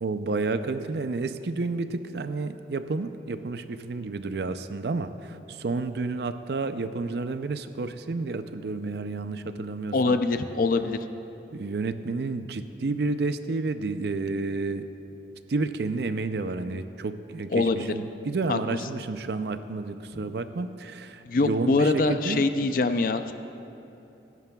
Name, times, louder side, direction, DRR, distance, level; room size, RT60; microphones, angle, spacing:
voice 1, 0.0-10.2 11.5-14.9 15.5-22.5, right 3 dB, 65° right, 10 dB, 0.5 m, -30 dB
voice 2, 9.9-11.0 17.5-17.9 18.5-18.6 21.3-23.3, left 3 dB, 50° left, 9 dB, 0.4 m, -24 dB
22.0 x 10.5 x 2.3 m, 2.9 s
head